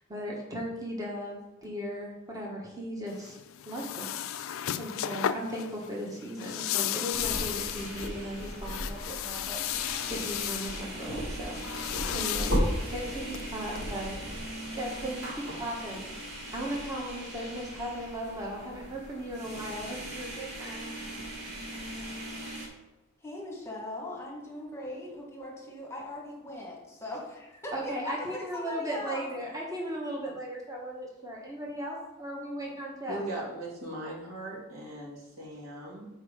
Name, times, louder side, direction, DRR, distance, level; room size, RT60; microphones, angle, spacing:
voice 1, 0.1-3.4 3.6-12.6 12.9-14.2 14.7-16.0 16.5-20.9 27.7-33.2, equal, 15° right, -2 dB, 1.2 m, -37 dB
sound 1, 3.1-13.8, left 11 dB, 70° left, 0.4 m, -35 dB
sound 2, 7.1-22.7, equal, 55° right, 2.4 m, -37 dB
voice 2, 23.2-29.3, left 1 dB, 15° left, -1 dB, 1.3 m, -40 dB
voice 3, 33.1-36.1, right 1 dB, 80° right, -4 dB, 2.2 m, -39 dB
7.2 x 4.4 x 4.9 m, 1.0 s
head